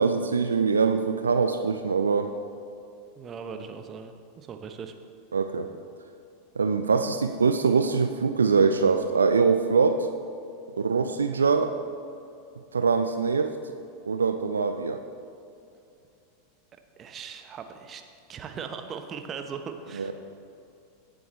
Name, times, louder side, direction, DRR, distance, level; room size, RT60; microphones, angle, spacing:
voice 1, 0.0-2.3 5.3-5.7 6.6-10.1 10.8-11.7 12.7-13.5 14.0-15.0 20.0-20.1, right 5 dB, 80° right, 8 dB, 0.4 m, -23 dB
voice 2, 3.2-4.9 17.0-18.0 18.3-20.1, right 6 dB, 30° right, 7 dB, 1.0 m, -39 dB
17.5 x 7.8 x 3.2 m, 2.6 s
figure-of-eight pair, 85°, 0 cm